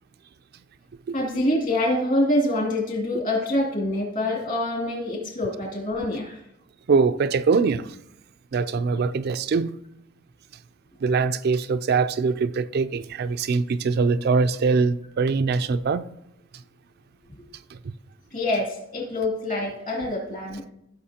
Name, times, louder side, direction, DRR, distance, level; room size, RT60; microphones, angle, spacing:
voice 1, 1.1-6.4 18.3-20.6, left 1 dB, 45° left, 2.7 m, -25 dB
voice 2, 6.9-7.9 8.5-9.7 11.0-16.1, right 4 dB, 55° right, 0.4 m, -22 dB
16.0 x 6.0 x 2.8 m
head